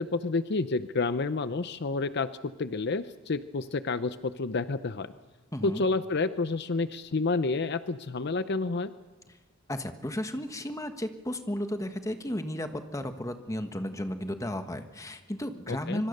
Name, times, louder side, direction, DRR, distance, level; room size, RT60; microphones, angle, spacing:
voice 1, 0.0-2.3 2.6-5.1 5.6-8.9 15.7-16.0, left 3 dB, 55° left, 12 dB, 0.7 m, -29 dB
voice 2, 5.5-5.8 9.7-16.1, left 1 dB, 15° left, 8 dB, 1.4 m, -34 dB
25.0 x 23.5 x 6.7 m, 1.2 s
head